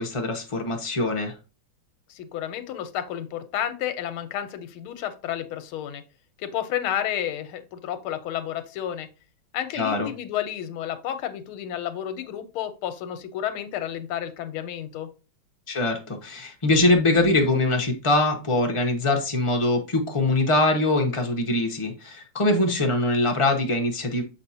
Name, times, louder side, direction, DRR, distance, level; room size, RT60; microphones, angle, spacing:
voice 1, 0.0-1.3 9.7-10.1 15.7-24.2, left 2 dB, 35° left, 0.5 m, -23 dB
voice 2, 2.1-6.0 6.4-9.1 9.5-15.1, left 10 dB, 90° left, 1.6 m, -31 dB
6.8 x 5.1 x 2.8 m
omnidirectional pair, 2.3 m